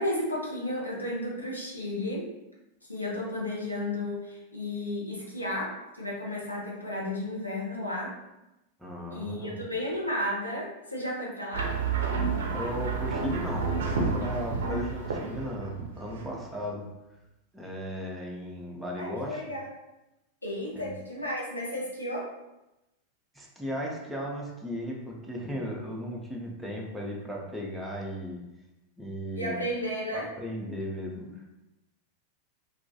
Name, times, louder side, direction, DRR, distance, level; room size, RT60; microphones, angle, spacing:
voice 1, 0.0-2.3 2.9-8.2 9.1-11.7 19.0-19.7 20.4-22.3 29.3-30.3, left 1 dB, 85° left, -4 dB, 0.6 m, -33 dB
voice 2, 8.8-9.6 12.5-16.9 17.5-19.4 20.7-21.0 23.3-28.4 29.0-29.6 30.1-31.5, equal, 5° right, -3 dB, 0.5 m, -36 dB
sound 1, 11.5-16.7, right 4 dB, 60° right, 0.5 m, -30 dB
2.3 x 2.2 x 2.6 m, 0.95 s
figure-of-eight pair, 90°, 0 cm